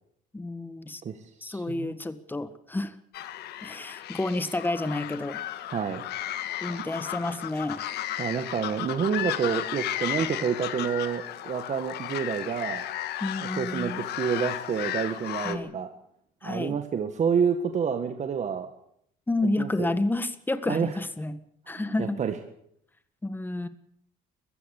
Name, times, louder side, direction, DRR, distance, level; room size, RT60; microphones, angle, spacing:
voice 1, 0.3-1.0 1.4-2.9 3.6-5.4 6.6-7.8 13.2-14.0 15.4-15.8 16.4-16.8 19.3-21.4 21.7-22.2 23.2-23.7, left 2 dB, 10° left, 12 dB, 1.6 m, -30 dB
voice 2, 1.0-1.9 5.7-6.0 8.2-12.9 13.6-15.9 16.4-18.7 19.6-19.9 20.7-20.9 21.7-22.4, right 7 dB, 45° right, 7 dB, 1.8 m, -29 dB
sound 1, 3.1-15.5, left 12 dB, 75° left, 1.7 m, -34 dB
22.5 x 15.0 x 8.4 m, 0.71 s
cardioid pair, 110°, 17 cm